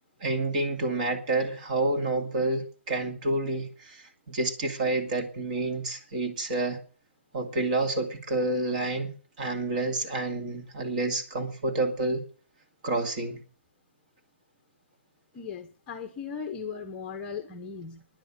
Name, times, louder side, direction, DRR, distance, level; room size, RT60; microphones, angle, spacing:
voice 1, 0.2-6.8 7.3-9.1 9.4-12.2 12.8-13.4, right 2 dB, 35° right, 4 dB, 2.4 m, -29 dB
voice 2, 15.3-18.1, left 6 dB, 15° left, 5 dB, 0.9 m, -37 dB
10.5 x 9.1 x 8.6 m, 0.41 s
hypercardioid pair, 165°, 7 cm